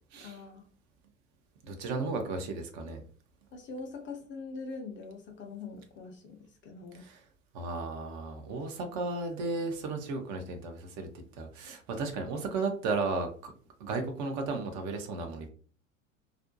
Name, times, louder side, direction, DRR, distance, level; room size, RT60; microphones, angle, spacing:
voice 1, 0.2-0.7 3.5-7.0, left 4 dB, 30° left, 3 dB, 0.6 m, -43 dB
voice 2, 1.6-3.0 6.9-7.2 7.5-11.1 11.4-13.5 13.8-15.5, right 3 dB, 45° right, 4 dB, 0.6 m, -34 dB
2.5 x 2.1 x 2.6 m, 0.43 s
figure-of-eight pair, 80°, 41 cm